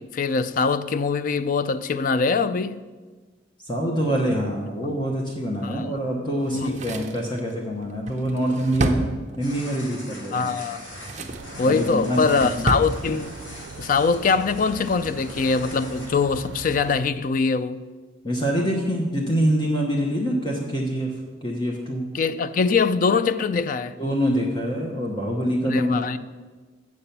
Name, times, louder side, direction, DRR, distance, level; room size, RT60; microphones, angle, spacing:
voice 1, 0.0-2.8 5.6-5.9 6.5-6.8 10.3-10.8 11.6-13.3 13.8-17.8 22.1-23.9 25.6-26.2, left 4 dB, 45° left, 0.4 m, -23 dB
voice 2, 3.7-9.1 9.4-10.5 11.6-12.7 18.2-21.1 21.4-22.1 24.0-26.0, equal, 25° left, 1.0 m, -25 dB
Drawer open or close, 6.4-9.7 10.6-11.5 11.9-12.9 13.2-13.3, right 2 dB, 40° right, 0.7 m, -30 dB
sound 1, 9.4-16.1, left 2 dB, 90° left, 2.2 m, -42 dB
sound 2, 11.3-17.0, right 4 dB, 80° right, 0.4 m, -40 dB
7.9 x 6.8 x 5.8 m
head